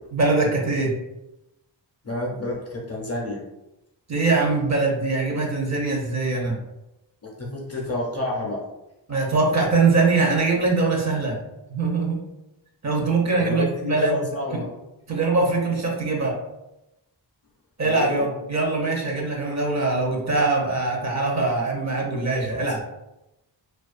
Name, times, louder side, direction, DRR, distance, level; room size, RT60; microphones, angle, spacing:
voice 1, 0.1-0.9 4.1-6.6 9.1-11.4 11.7-12.2 12.8-14.2 14.5-14.6 15.1-16.4 17.8-22.8, right 3 dB, 40° right, -1 dB, 0.5 m, -22 dB
voice 2, 2.0-3.4 7.2-8.6 13.4-14.7 17.8-18.3 22.5-22.8, left 2 dB, 35° left, -1 dB, 0.5 m, -30 dB
2.3 x 2.3 x 2.4 m, 0.93 s
wide cardioid pair, 95°, 45 cm